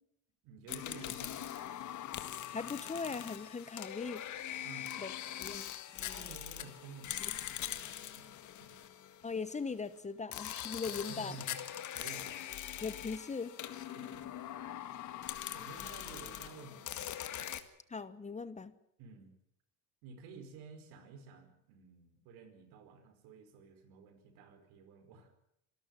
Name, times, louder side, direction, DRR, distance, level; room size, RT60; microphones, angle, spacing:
voice 1, 0.4-1.8 4.6-5.5 6.1-8.9 10.9-12.5 13.9-14.6 15.5-17.2 19.0-19.4 20.0-25.3, right 4 dB, 80° right, 8 dB, 5.0 m, -53 dB
sound 1, 0.7-9.5 10.3-17.6, left 11 dB, 50° left, 1.9 m, -42 dB
voice 2, 2.5-4.2 4.5-4.6 5.0-5.1 5.4-5.7 6.0-6.3 7.2-7.3 9.2-11.4 12.8-13.5 17.9-18.7, left 4 dB, 20° left, 15 dB, 1.1 m, -40 dB
26.0 x 13.0 x 8.9 m, 0.75 s
cardioid pair, 115°, 37 cm